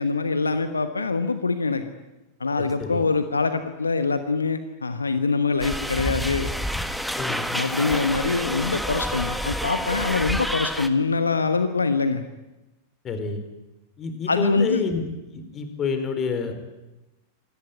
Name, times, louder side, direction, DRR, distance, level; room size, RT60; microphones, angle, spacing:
voice 1, 0.0-1.9 2.4-6.5 7.5-12.2 14.3-14.8, left 4 dB, 75° left, 10 dB, 1.2 m, -24 dB
voice 2, 2.6-3.0 7.2-7.4 13.0-13.4 14.0-15.1 15.3-16.5, left 5 dB, 30° left, 8 dB, 4.5 m, -28 dB
sound 1, 5.6-10.9, equal, ahead, 1.6 m, -28 dB
26.5 x 18.0 x 9.7 m, 1.0 s
figure-of-eight pair, 90°, 0 cm